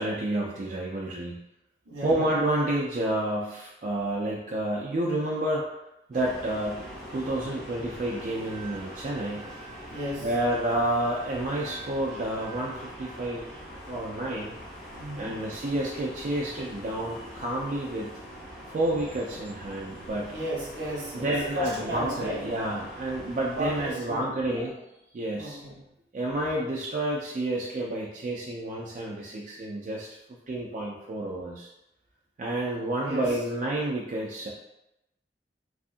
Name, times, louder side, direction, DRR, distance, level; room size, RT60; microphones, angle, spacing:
voice 1, 0.0-1.4 2.0-5.7 6.1-6.8 7.1-9.4 10.2-13.4 13.7-14.5 15.2-18.1 18.7-20.3 21.1-24.7 25.1-25.6 26.1-30.1 30.5-31.7 32.4-34.5, right 1 dB, 45° right, -4 dB, 0.3 m, -29 dB
voice 2, 1.9-2.3 9.9-10.3 14.9-15.4 20.3-22.5 23.5-24.7 25.4-25.9 33.0-33.4, equal, 75° right, -4 dB, 0.9 m, -34 dB
sound 1, 6.1-23.9, equal, ahead, 0.8 m, -43 dB
2.6 x 2.4 x 2.4 m, 0.89 s
head